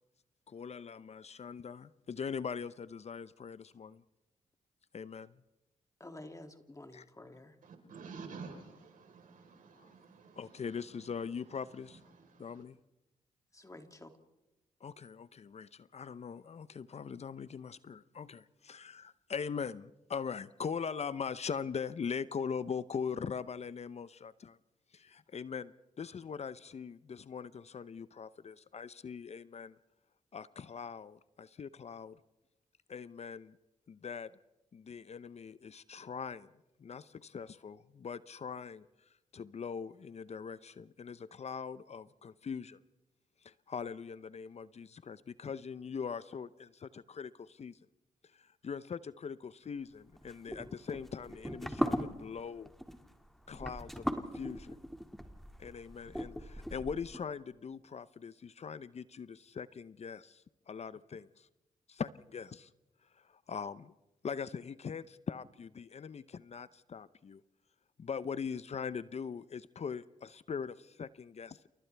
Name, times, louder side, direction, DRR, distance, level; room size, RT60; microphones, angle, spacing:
voice 1, 0.5-4.0 4.9-5.3 6.9-7.0 9.8-9.9 10.4-12.0 12.4-12.8 14.8-24.6 24.9-29.8 30.3-32.2 32.9-33.6 33.9-34.3 34.7-36.5 36.8-38.9 39.3-42.8 43.4-47.8 48.3-52.7 53.5-54.8 55.6-61.5 61.9-62.7 63.2-63.9 64.2-67.4 68.0-71.7, left 6 dB, 50° left, 0.7 m, -41 dB
voice 2, 6.0-7.6 13.5-14.1, left 1 dB, 20° left, 2.6 m, -50 dB
voice 3, 7.6-12.6, right 4 dB, 70° right, 4.2 m, -51 dB
sound 1, 50.2-57.2, equal, ahead, 2.2 m, -39 dB
28.5 x 28.5 x 3.4 m
supercardioid pair, 50°, 14 cm